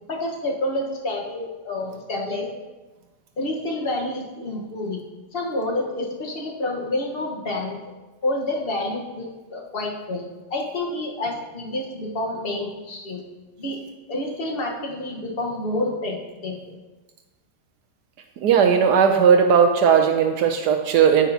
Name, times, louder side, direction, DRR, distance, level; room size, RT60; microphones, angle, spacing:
voice 1, 0.1-2.5 3.4-5.0 5.3-7.8 8.2-13.2 13.6-13.8 14.1-16.8, left 1 dB, 35° left, -1 dB, 1.4 m, -28 dB
voice 2, 18.4-21.3, right 7 dB, 75° right, 4 dB, 1.2 m, -17 dB
9.8 x 9.1 x 2.8 m, 1.2 s
omnidirectional pair, 1.9 m